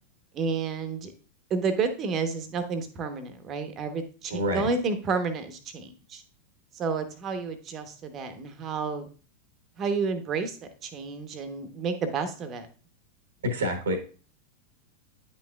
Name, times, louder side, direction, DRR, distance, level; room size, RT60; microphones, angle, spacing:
voice 1, 0.3-1.1 1.5-6.2 6.7-9.1 9.8-10.6 10.8-12.7, right 5 dB, 30° right, 9 dB, 1.0 m, -30 dB
voice 2, 4.3-4.7 13.4-14.0, equal, 65° right, 6 dB, 1.2 m, -27 dB
9.5 x 5.6 x 2.3 m, 0.38 s
figure-of-eight pair, 90°, 0 cm